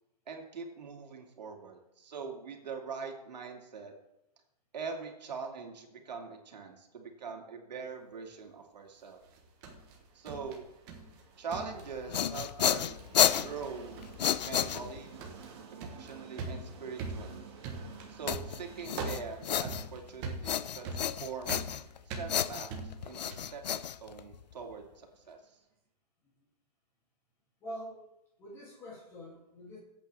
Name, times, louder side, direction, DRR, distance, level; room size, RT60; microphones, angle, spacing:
voice 1, 0.3-3.9 4.7-9.2 10.1-10.7 11.4-12.9 13.4-13.9 14.4-15.1 15.7-17.4 18.1-21.6 22.1-25.6, right 5 dB, 80° right, 2 dB, 2.5 m, -43 dB
sound 1, 9.2-11.2 11.5-12.4 12.7-13.1 13.4-13.7 14.0-14.3 14.6-23.6, right 3 dB, 15° right, 1.1 m, -42 dB
Train, 9.7-25.5, right 6 dB, 40° right, 2.0 m, -54 dB
sound 2, 11.8-15.2 18.3-20.1 20.4-22.0 22.3-24.5, left 9 dB, 85° left, 0.6 m, -31 dB
voice 2, 27.6-28.0 28.4-29.8, equal, 10° left, -4 dB, 2.5 m, -45 dB
18.0 x 8.4 x 3.4 m, 0.86 s
hypercardioid pair, 180°, 21 cm